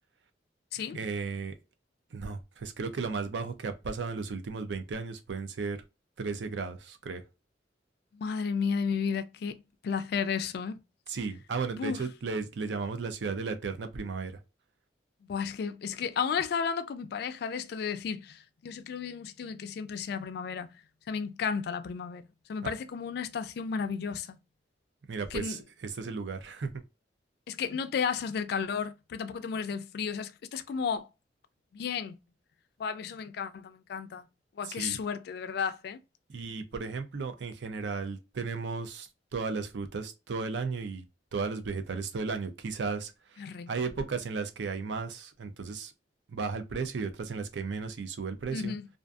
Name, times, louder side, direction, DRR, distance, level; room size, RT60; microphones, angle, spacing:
voice 1, 0.9-1.5 2.1-5.8 6.2-7.2 11.1-14.4 22.6-22.7 25.1-26.7 34.6-35.0 36.3-41.0 41.3-45.9 46.3-48.7, right 4 dB, 80° right, 0.5 m, -35 dB
voice 2, 8.1-10.8 11.8-12.0 15.3-20.7 21.1-22.2 22.5-24.4 25.3-25.6 27.5-31.1 31.7-32.1 32.8-34.3 34.6-36.0 43.4-43.7 48.5-48.9, left 6 dB, 60° left, 0.3 m, -33 dB
2.5 x 2.5 x 2.2 m
head